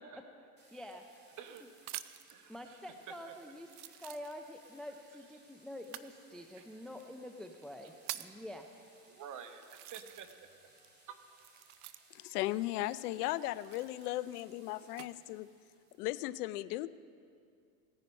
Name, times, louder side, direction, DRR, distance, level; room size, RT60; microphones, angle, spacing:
sound 1, 0.6-16.0, right 2 dB, 20° right, 2.4 m, -64 dB
voice 1, 0.7-1.0 2.5-3.7 4.0-8.7, left 1 dB, ahead, 5 dB, 0.5 m, -47 dB
sound 2, 0.7-2.4 3.1-3.2 3.7-4.7 5.8-6.1 7.0-7.1 7.6-8.4 9.1-9.2 9.6-10.5 10.8-12.3 13.5-15.1 15.8-16.2, right 15 dB, 75° right, 0.7 m, -47 dB
voice 2, 1.4-2.0 2.3-3.3 6.6-6.7 7.8-7.9 9.1-10.3 10.6-10.7 11.1-11.5, right 7 dB, 40° right, 7 dB, 1.3 m, -50 dB
voice 3, 12.1-15.5 16.0-16.9, left 16 dB, 75° left, 17 dB, 0.6 m, -36 dB
17.5 x 9.9 x 5.3 m, 2.4 s
hypercardioid pair, 100°, 46 cm